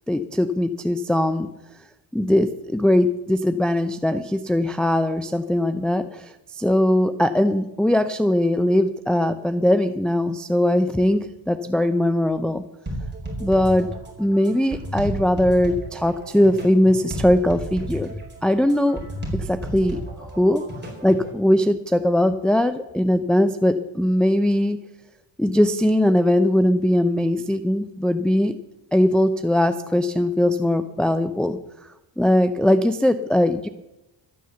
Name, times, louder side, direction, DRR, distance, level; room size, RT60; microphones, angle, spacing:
voice 1, 0.1-1.5 2.1-12.6 13.4-13.9 14.2-18.1 18.4-19.0 19.3-20.0 20.4-20.6 21.0-24.8 25.4-28.5 28.9-31.6 32.2-33.7, left 1 dB, ahead, 9 dB, 0.5 m, -20 dB
sound 1, 12.9-21.3, right 1 dB, 25° right, 4.5 m, -33 dB
13.0 x 9.4 x 7.0 m, 0.90 s
cardioid pair, 115°, 45 cm